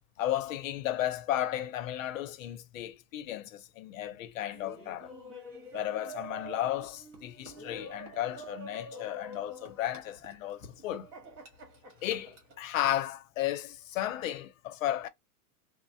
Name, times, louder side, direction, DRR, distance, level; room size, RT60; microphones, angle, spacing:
voice 1, 0.2-5.1 5.7-11.1 12.0-15.1, left 12 dB, 60° left, 0.6 m, -34 dB
Laughter, 4.5-12.6, right 1 dB, 50° right, 1.4 m, -47 dB
3.1 x 2.0 x 2.6 m
supercardioid pair, 160°, 46 cm